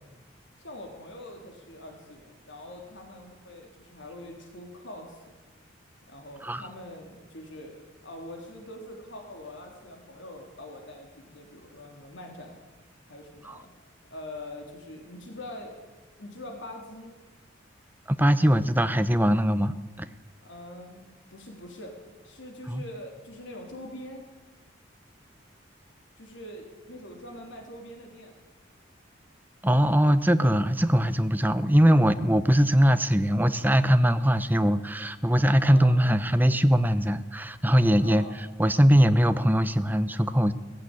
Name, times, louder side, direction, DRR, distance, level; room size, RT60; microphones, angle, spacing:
voice 1, 0.6-5.2 6.1-12.6 13.1-13.7 14.1-15.8 16.2-17.1 20.4-21.0 21.3-22.0 22.2-24.3 26.2-28.4 35.6-36.0 38.0-38.3, left 1 dB, 65° left, 2 dB, 3.7 m, -43 dB
voice 2, 18.1-20.1 22.7-22.8 29.6-40.5, equal, 10° right, 11 dB, 0.8 m, -21 dB
18.0 x 16.0 x 9.9 m, 1.2 s
head